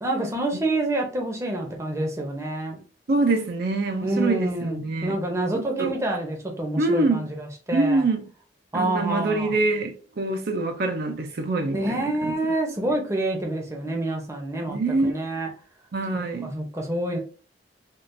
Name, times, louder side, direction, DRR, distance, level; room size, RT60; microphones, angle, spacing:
voice 1, 0.0-2.8 4.0-8.1 8.7-9.6 11.7-15.5 16.1-17.2, right 1 dB, 15° right, 0.7 m, -27 dB
voice 2, 3.1-5.2 5.5-5.9 6.8-7.3 7.7-8.3 8.7-12.3 14.7-15.1 15.9-16.5, right 3 dB, 60° right, 0.5 m, -25 dB
3.6 x 2.4 x 2.6 m
head